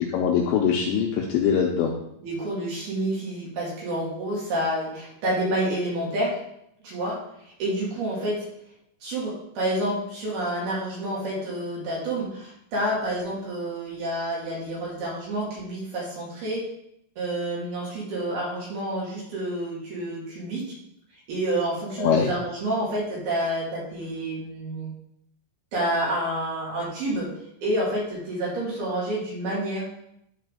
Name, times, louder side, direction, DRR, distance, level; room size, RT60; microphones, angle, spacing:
voice 1, 0.0-1.9 22.0-22.3, left 7 dB, 85° left, 0 dB, 2.6 m, -22 dB
voice 2, 2.2-6.4 6.8-7.2 7.6-8.5 9.0-16.7 17.2-20.8 21.3-24.9 25.7-27.3 27.6-29.9, right 1 dB, 55° right, -5 dB, 3.8 m, -28 dB
12.0 x 4.3 x 3.7 m, 0.76 s
omnidirectional pair, 5.8 m